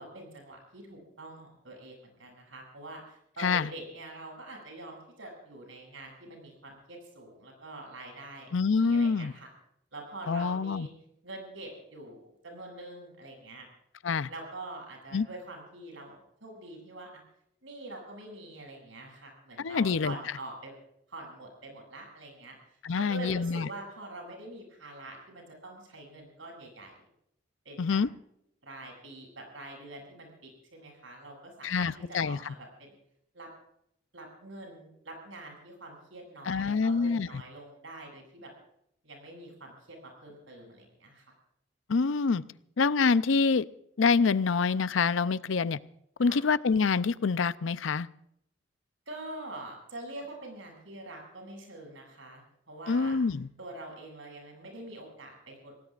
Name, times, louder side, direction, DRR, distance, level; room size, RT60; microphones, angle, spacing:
voice 1, 0.0-9.5 9.9-10.9 11.2-12.2 12.4-13.7 14.3-17.2 17.6-20.7 21.1-22.5 22.9-27.0 27.6-28.0 28.6-33.0 33.3-33.5 34.1-38.5 39.0-41.2 46.2-46.4 49.1-53.2 53.6-55.7, right 2 dB, 75° right, 1 dB, 7.4 m, -45 dB
voice 2, 3.4-3.7 8.5-9.3 10.3-10.9 14.0-14.3 15.1-15.3 19.6-20.1 22.8-23.7 27.8-28.1 31.6-32.5 36.5-37.4 41.9-42.4 42.8-43.6 44.0-45.8 46.2-48.1 52.9-53.5, left 5 dB, 80° left, 16 dB, 0.5 m, -26 dB
28.0 x 18.5 x 2.5 m, 0.74 s
head